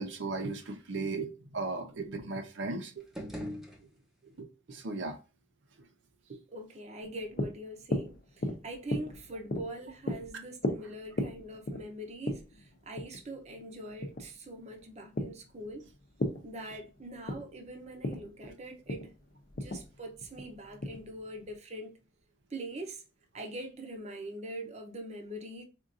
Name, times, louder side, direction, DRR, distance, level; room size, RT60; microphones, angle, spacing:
voice 1, 0.0-3.3 4.2-5.2 6.3-6.4 10.3-10.4, right 3 dB, 85° right, 0.6 m, -37 dB
sound 1, 3.0-4.4, equal, ahead, 0.7 m, -42 dB
voice 2, 6.5-15.9 16.4-19.1 19.5-21.9 22.5-23.0 23.3-25.6, right 1 dB, 35° right, 0.7 m, -43 dB
sound 2, 7.0-21.6, left 1 dB, 50° left, 0.6 m, -38 dB
4.4 x 2.5 x 2.5 m
head